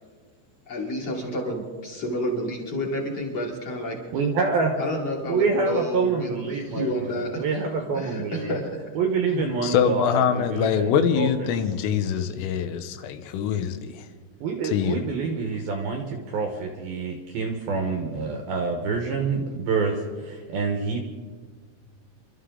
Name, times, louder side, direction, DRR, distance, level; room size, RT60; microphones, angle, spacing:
voice 1, 0.7-4.0 4.8-7.6 7.9-9.0, equal, 35° left, 3.4 m, -30 dB
voice 2, 4.1-4.8 5.3-8.5 9.0-11.3 14.4-21.0, right 4 dB, 70° right, 2.4 m, -27 dB
voice 3, 9.3-14.1 14.6-15.1 18.2-18.3, left 8 dB, 85° left, 3.6 m, -24 dB
27.0 x 13.0 x 3.8 m
omnidirectional pair, 5.7 m